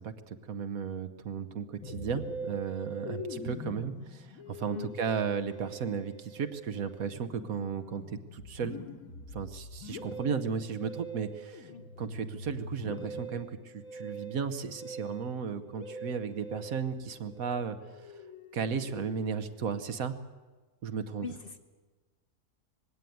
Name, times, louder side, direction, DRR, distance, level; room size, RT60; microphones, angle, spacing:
voice 1, 0.0-8.8 9.3-11.7 12.0-18.1 18.5-20.2 20.8-21.3, right 6 dB, 65° right, 10 dB, 1.4 m, -35 dB
Musical instrument, 1.8-19.4, right 1 dB, 65° left, 1.8 m, -43 dB
voice 2, 21.2-21.6, left 5 dB, 40° left, 7 dB, 1.1 m, -41 dB
20.0 x 16.5 x 9.3 m, 1.3 s
omnidirectional pair, 1.6 m